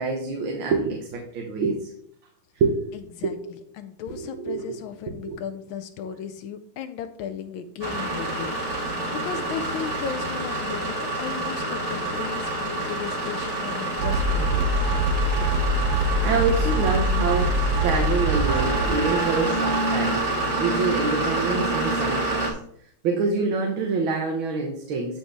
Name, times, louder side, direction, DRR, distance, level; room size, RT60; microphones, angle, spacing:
voice 1, 0.0-1.9 2.6-3.0 3.2-3.5 4.2-4.8 5.3-5.4 16.2-22.5 23.0-25.2, right 4 dB, 85° right, 1 dB, 1.9 m, -26 dB
voice 2, 3.2-14.7, left 8 dB, 85° left, 8 dB, 1.4 m, -36 dB
sound 1, 7.8-22.5, right 2 dB, 20° right, 1.8 m, -27 dB
sound 2, 14.0-20.2, right 1 dB, 60° right, 0.7 m, -24 dB
13.0 x 4.5 x 3.4 m, 0.67 s
omnidirectional pair, 2.2 m